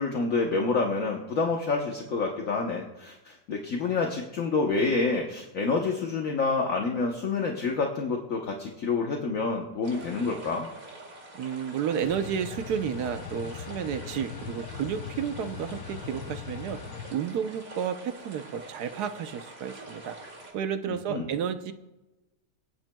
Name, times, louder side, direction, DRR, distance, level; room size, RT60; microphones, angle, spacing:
voice 1, 0.0-10.7 21.1-21.3, left 4 dB, 60° left, 1 dB, 1.3 m, -28 dB
sound 1, 9.8-20.5, right 2 dB, 55° right, 2.8 m, -46 dB
voice 2, 11.3-16.8 17.1-20.2 20.5-21.7, right 8 dB, 80° right, 9 dB, 1.3 m, -31 dB
sound 2, 12.0-17.1, left 9 dB, 75° left, 1.1 m, -40 dB
26.0 x 8.8 x 2.2 m, 1.1 s
omnidirectional pair, 1.7 m